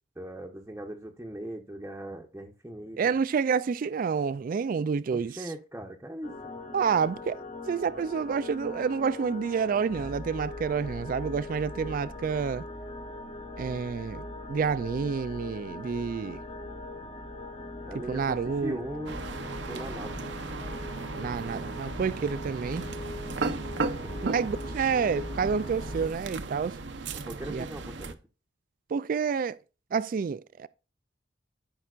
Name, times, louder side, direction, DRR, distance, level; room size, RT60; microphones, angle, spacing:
voice 1, 0.2-3.1 5.1-6.3 17.9-19.2 19.7-20.1 23.9-24.1 27.1-28.2, right 1 dB, 10° right, 0.9 m, -39 dB
voice 2, 3.0-5.5 6.7-7.4 7.7-12.6 13.6-16.4 18.1-18.8 21.1-22.9 24.2-26.8 27.5-27.7 28.9-29.6 29.9-30.7, right 6 dB, 50° right, 0.3 m, -29 dB
sound 1, 6.2-26.1, left 2 dB, 35° left, 1.2 m, -41 dB
sound 2, 19.1-28.1, right 3 dB, 70° right, 0.8 m, -36 dB
13.5 x 5.6 x 2.4 m
head